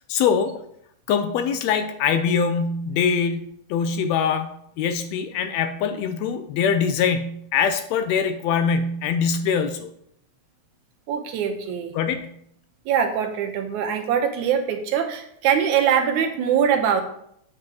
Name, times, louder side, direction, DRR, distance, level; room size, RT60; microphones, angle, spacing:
voice 1, 0.1-0.6 1.1-9.9 11.9-12.4, left 6 dB, 75° left, 8 dB, 1.7 m, -23 dB
voice 2, 11.1-11.9 12.9-17.0, right 8 dB, 90° right, 5 dB, 2.4 m, -22 dB
7.7 x 3.8 x 6.2 m, 0.71 s
omnidirectional pair, 3.3 m